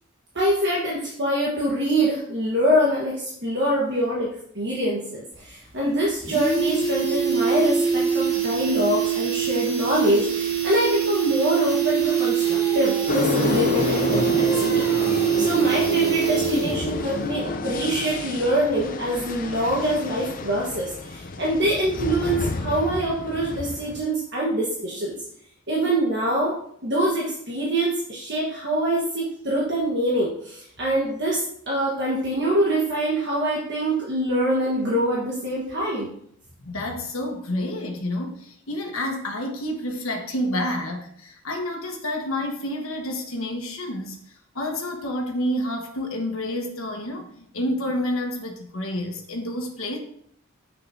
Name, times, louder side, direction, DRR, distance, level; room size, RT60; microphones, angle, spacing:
voice 1, 0.3-25.1 25.7-26.5 26.8-36.1, right 1 dB, 55° right, -5 dB, 1.4 m, -24 dB
sound 1, 5.3-5.4 5.7-5.8 6.1-16.9 17.2-17.3, right 8 dB, 30° right, 1.9 m, -24 dB
Singing, 12.0-17.2, left 2 dB, 5° right, 1.9 m, -35 dB
sound 2, 13.1-24.0, left 3 dB, 40° left, 0.5 m, -29 dB
voice 2, 36.6-44.2 44.5-50.0, left 1 dB, 80° left, 3 dB, 1.3 m, -29 dB
7.7 x 6.3 x 2.8 m, 0.66 s
head